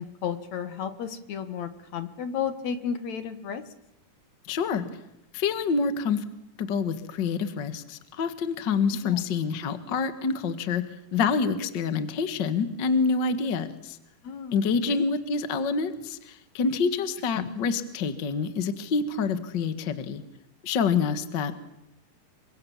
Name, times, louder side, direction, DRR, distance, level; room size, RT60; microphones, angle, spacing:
voice 1, 0.0-3.6 9.0-9.2 14.2-15.0 17.4-17.7, left 7 dB, 60° left, 11 dB, 2.6 m, -33 dB
voice 2, 4.4-4.9 5.3-6.2 6.6-10.8 11.1-14.0 14.5-20.2 20.6-21.6, left 5 dB, 45° left, 11 dB, 1.6 m, -27 dB
28.5 x 25.0 x 7.3 m, 0.82 s
omnidirectional pair, 3.8 m